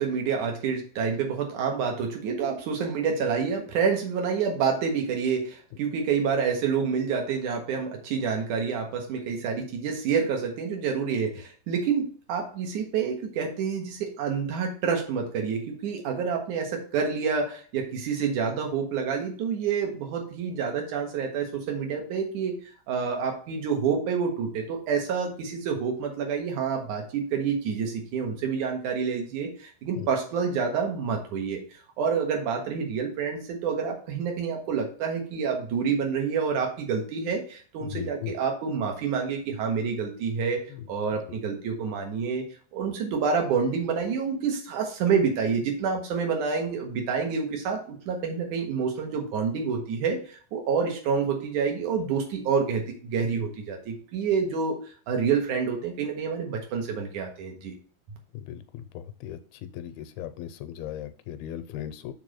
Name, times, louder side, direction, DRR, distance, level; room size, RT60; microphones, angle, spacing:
voice 1, 0.0-31.6 32.0-40.6 40.9-42.4 42.7-54.8 55.1-57.7, right 6 dB, 60° right, 2 dB, 2.7 m, -28 dB
voice 2, 37.8-38.3 40.7-40.8 58.3-62.1, left 11 dB, 85° left, 11 dB, 2.5 m, -37 dB
6.8 x 3.7 x 6.4 m, 0.43 s
omnidirectional pair, 4.3 m